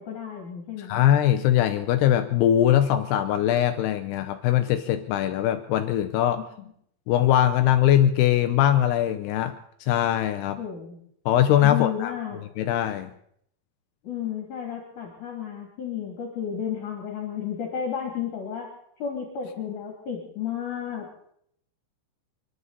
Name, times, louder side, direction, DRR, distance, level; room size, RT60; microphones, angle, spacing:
voice 1, 0.0-1.0 10.6-11.0 11.6-12.4 14.0-18.7 19.0-21.0, left 8 dB, 50° left, 0 dB, 4.1 m, -32 dB
voice 2, 0.8-6.4 7.1-9.5 9.9-10.6 11.3-12.1 12.6-13.1, left 11 dB, 80° left, 8 dB, 2.8 m, -21 dB
29.5 x 11.5 x 4.1 m, 0.70 s
omnidirectional pair, 4.7 m